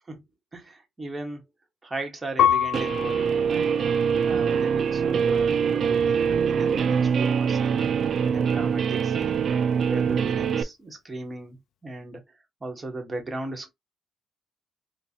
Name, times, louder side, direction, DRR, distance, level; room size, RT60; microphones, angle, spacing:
voice 1, 0.5-1.4 1.8-3.9 4.2-7.9 8.2-9.4 9.8-12.2 12.6-13.7, right 2 dB, 25° right, 1.4 m, -37 dB
Piano, 2.4-5.1 5.8-6.5, left 10 dB, 80° left, 0.3 m, -28 dB
Guitar, 2.7-10.6, right 7 dB, 55° right, 0.4 m, -24 dB
4.0 x 2.4 x 2.8 m
cardioid pair, 90°, 0 cm